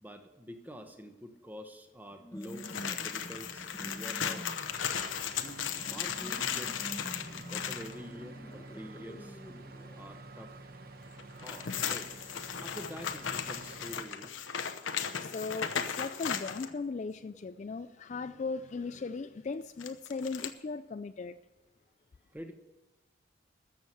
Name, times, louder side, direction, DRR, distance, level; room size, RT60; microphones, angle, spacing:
voice 1, 0.0-4.5 5.3-6.9 7.2-9.4 9.9-10.5 11.3-14.4 22.3-22.5, equal, 10° right, 6 dB, 1.0 m, -47 dB
sound 1, 2.1-10.0, equal, 15° left, 1.0 m, -47 dB
sound 2, 2.4-7.9 11.2-16.7 19.8-20.5, left 7 dB, 70° left, 0.9 m, -36 dB
sound 3, 4.6-14.0, right 2 dB, 45° right, 1.0 m, -49 dB
voice 2, 15.2-21.4, left 4 dB, 35° left, 11 dB, 0.3 m, -38 dB
13.5 x 7.2 x 7.8 m, 1.2 s
head